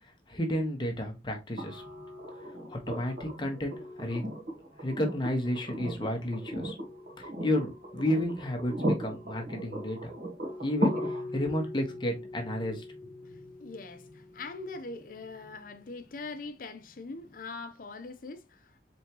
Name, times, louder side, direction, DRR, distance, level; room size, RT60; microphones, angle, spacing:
voice 1, 0.3-1.8 2.7-4.2 4.8-6.7 7.2-10.1 10.6-12.8, left 1 dB, 25° left, 0.9 m, -32 dB
sound 1, 1.6-15.5 17.3-17.4, equal, 55° right, 1.3 m, -37 dB
voice 2, 13.2-18.8, left 3 dB, 50° left, 0.5 m, -42 dB
4.4 x 3.4 x 2.9 m
head